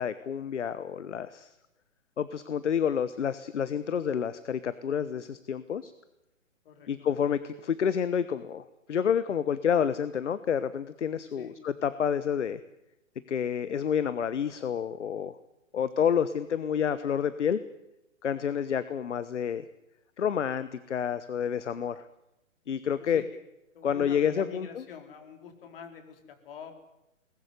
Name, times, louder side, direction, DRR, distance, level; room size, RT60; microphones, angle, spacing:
voice 1, 0.0-1.5 2.2-5.9 6.9-12.6 13.3-15.3 15.7-17.6 18.2-19.6 20.2-22.0 22.7-23.2 23.8-24.8, left 8 dB, 60° left, 14 dB, 1.2 m, -29 dB
voice 2, 23.7-26.8, left 8 dB, 45° left, 6 dB, 4.4 m, -45 dB
21.5 x 20.5 x 9.4 m, 0.90 s
figure-of-eight pair, 130°, 39 cm